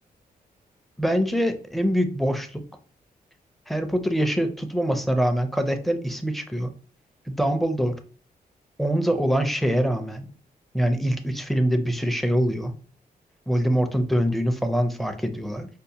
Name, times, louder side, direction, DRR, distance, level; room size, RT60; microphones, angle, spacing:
voice 1, 1.0-2.6 3.7-6.7 7.3-8.0 8.8-10.3 10.7-12.8 13.5-15.7, equal, ahead, 6 dB, 0.5 m, -24 dB
5.1 x 2.1 x 2.8 m, 0.40 s
cardioid pair, 105°, 16 cm